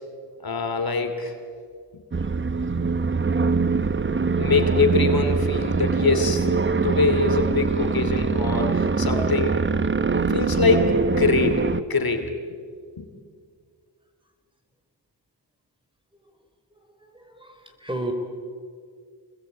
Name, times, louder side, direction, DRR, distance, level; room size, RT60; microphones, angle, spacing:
voice 1, 0.4-1.3 4.4-6.5 6.8-9.6 10.1-12.3 13.0-13.1, left 4 dB, 55° left, 6 dB, 2.8 m, -23 dB
sound 1, 2.1-11.8, right 4 dB, 25° right, 0.9 m, -23 dB
voice 2, 16.7-18.1, right 1 dB, 10° right, 5 dB, 4.6 m, -35 dB
26.5 x 21.0 x 8.8 m, 2.1 s
cardioid pair, 65°, 44 cm